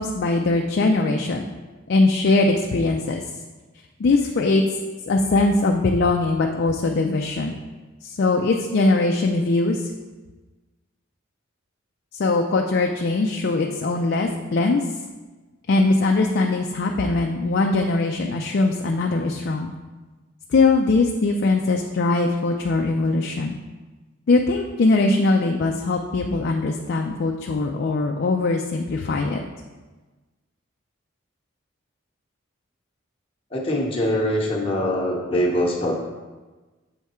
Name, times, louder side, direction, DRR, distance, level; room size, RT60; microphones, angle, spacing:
voice 1, 0.0-1.4 1.9-3.2 4.0-4.6 5.1-7.5 8.0-9.9 12.1-14.8 15.7-19.7 20.5-23.6 24.3-29.4, left 3 dB, 55° left, 2 dB, 0.4 m, -21 dB
voice 2, 33.5-35.9, equal, 25° left, -3 dB, 0.9 m, -23 dB
7.3 x 3.5 x 4.3 m, 1.3 s
head